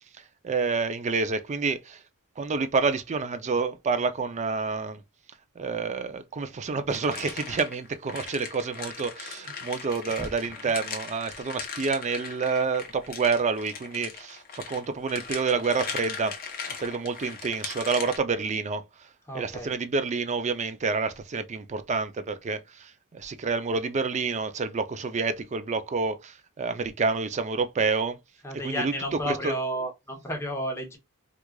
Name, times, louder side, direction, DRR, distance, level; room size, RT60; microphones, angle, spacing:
voice 1, 0.4-2.0 2.4-5.0 5.6-16.4 16.8-18.8 19.3-28.2 28.6-29.6, right 4 dB, 30° right, 0.4 m, -28 dB
sound 1, 6.9-18.2, left 5 dB, 40° left, 0.8 m, -39 dB
voice 2, 19.3-19.7 28.4-31.0, equal, 10° left, 0.8 m, -32 dB
4.6 x 2.4 x 2.2 m
head